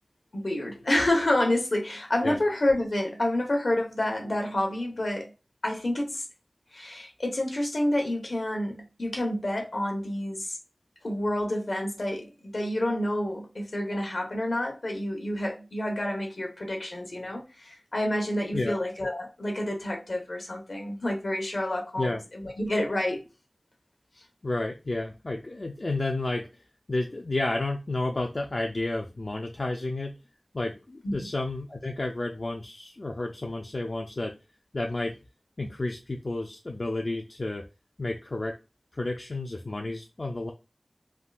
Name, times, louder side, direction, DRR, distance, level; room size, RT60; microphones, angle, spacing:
voice 1, 0.3-5.3 5.6-6.2 6.7-10.6 11.0-23.2 31.0-31.3, left 1 dB, 75° left, 0.9 m, -29 dB
voice 2, 24.4-26.5 26.9-30.1 30.5-34.3 34.7-35.2 35.6-37.6 38.0-38.6 38.9-40.5, left 2 dB, 55° left, 0.4 m, -31 dB
3.5 x 2.3 x 2.4 m
wide cardioid pair, 55°, 0 cm